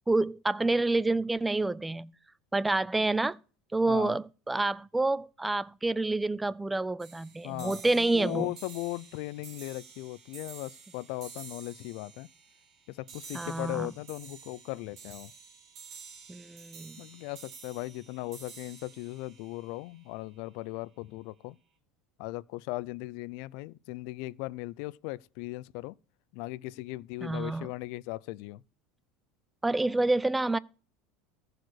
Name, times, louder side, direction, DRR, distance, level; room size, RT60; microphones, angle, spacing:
voice 1, 0.1-2.1 2.5-3.4 3.7-8.5 13.3-13.9 16.3-17.0 27.2-27.7 29.6-30.6, right 2 dB, 10° right, 0.5 m, -28 dB
sound 1, 7.0-20.5, right 6 dB, 50° right, 3.0 m, -50 dB
voice 2, 7.4-12.3 12.9-15.3 17.0-21.6 22.2-25.9 26.3-28.6, left 20 dB, 70° left, 0.5 m, -38 dB
14.5 x 4.9 x 6.4 m
supercardioid pair, 110°, 0 cm